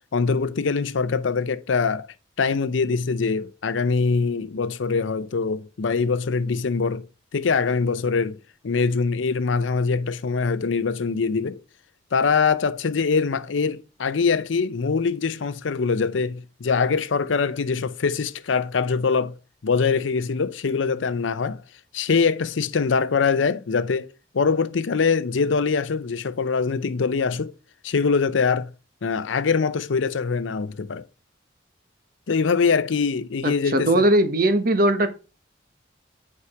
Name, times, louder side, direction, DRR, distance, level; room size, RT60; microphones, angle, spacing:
voice 1, 0.1-2.1 2.4-7.1 7.3-8.4 8.6-11.6 12.1-19.3 19.6-21.6 21.9-24.1 24.3-27.5 27.8-28.7 29.0-31.0 32.3-34.0, left 5 dB, 85° left, 0.5 m, -23 dB
voice 2, 33.4-35.1, right 1 dB, 50° right, 1.0 m, -19 dB
8.4 x 4.8 x 4.7 m
head